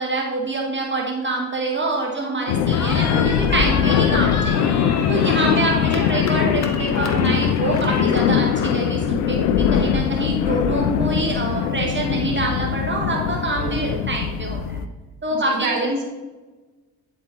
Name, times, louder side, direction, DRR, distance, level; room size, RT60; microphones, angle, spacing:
voice 1, 0.0-4.7 5.1-14.8 15.2-15.9, right 2 dB, 25° right, 0 dB, 1.4 m, -25 dB
sound 1, 2.5-14.8, left 8 dB, 80° left, 0.6 m, -21 dB
Cheering, 2.7-8.2, left 4 dB, 35° left, 1.3 m, -30 dB
voice 2, 5.3-5.7 13.6-14.0 15.3-16.0, right 3 dB, 50° right, 0 dB, 2.6 m, -28 dB
9.6 x 4.5 x 4.2 m, 1.2 s
hypercardioid pair, 45°, 44 cm